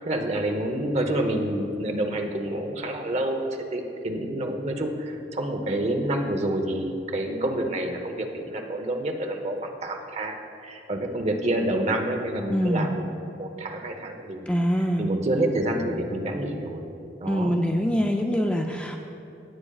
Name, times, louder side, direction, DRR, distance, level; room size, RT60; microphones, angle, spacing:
voice 1, 0.0-10.4 10.6-13.1 13.3-14.5 15.0-16.8 17.2-17.6, right 1 dB, 40° right, 4 dB, 0.8 m, -28 dB
voice 2, 12.5-12.9 14.5-15.1 17.3-19.0, equal, 5° left, 2 dB, 0.4 m, -24 dB
16.5 x 8.6 x 2.3 m, 2.7 s
head